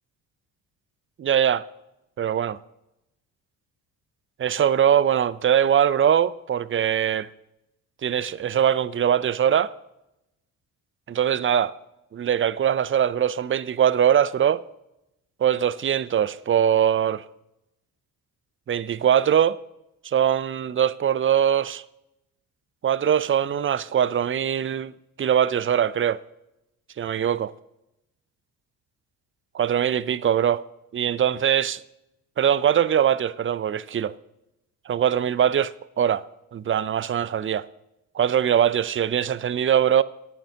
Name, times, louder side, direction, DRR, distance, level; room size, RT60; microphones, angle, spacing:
voice 1, 1.2-1.6 2.2-2.6 4.4-7.3 8.0-9.7 11.1-11.7 12.1-14.6 15.4-17.3 18.7-19.6 20.0-21.8 22.8-24.9 25.2-26.2 27.0-27.5 29.5-30.6 30.9-31.8 32.4-34.1 34.9-36.2 36.5-37.7 38.1-40.0, right 9 dB, 30° right, 0.5 m, -22 dB
21.5 x 8.9 x 2.8 m
hypercardioid pair, 50°, 46 cm